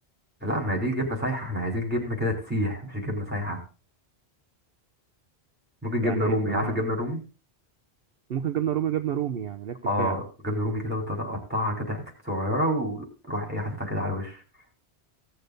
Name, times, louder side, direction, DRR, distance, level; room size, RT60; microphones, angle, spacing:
voice 1, 0.4-3.6 5.8-7.2 9.8-14.4, equal, 10° right, 1 dB, 3.7 m, -28 dB
voice 2, 6.0-6.8 8.3-10.2, right 9 dB, 65° right, 7 dB, 0.9 m, -29 dB
17.0 x 6.7 x 3.9 m, 0.33 s
omnidirectional pair, 1.1 m